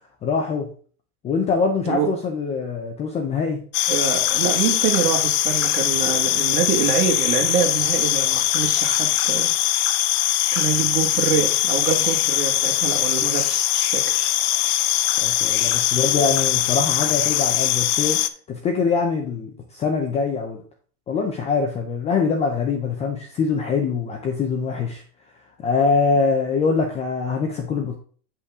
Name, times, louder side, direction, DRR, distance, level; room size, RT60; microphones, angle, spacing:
voice 1, 0.2-0.7 1.2-3.6 15.2-18.2 18.5-20.6 21.1-25.0 25.6-27.9, left 5 dB, 15° left, 2 dB, 0.4 m, -23 dB
sound 1, 3.7-18.3, left 14 dB, 75° left, 0.8 m, -21 dB
voice 2, 3.9-9.5 10.5-14.3, right 8 dB, 75° right, 2 dB, 2.0 m, -25 dB
8.3 x 5.5 x 3.5 m, 0.43 s
supercardioid pair, 160°, 46 cm